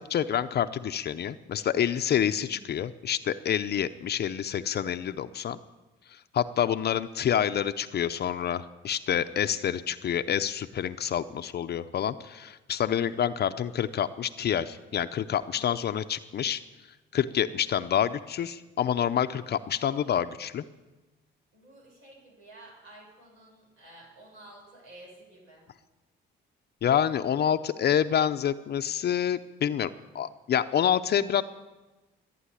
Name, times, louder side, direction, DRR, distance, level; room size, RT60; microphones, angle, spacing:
voice 1, 0.1-5.6 6.1-16.6 17.1-20.6 26.8-29.9 30.1-31.4, left 9 dB, 55° left, 10 dB, 0.6 m, -27 dB
voice 2, 21.5-25.7, right 1 dB, 90° right, -3 dB, 7.2 m, -51 dB
14.5 x 9.3 x 9.8 m, 1.1 s
cardioid pair, 90°, 20 cm